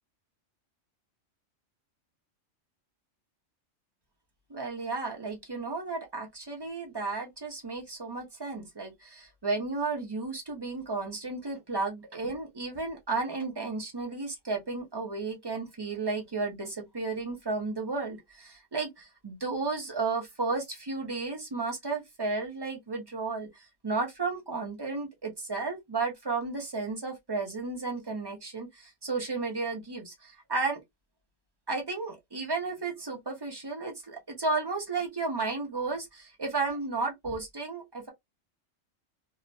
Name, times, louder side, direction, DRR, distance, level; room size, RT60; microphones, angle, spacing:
voice 1, 4.5-30.8 31.7-38.1, right 3 dB, 30° right, 0.4 m, -33 dB
2.8 x 2.0 x 2.6 m
omnidirectional pair, 1.4 m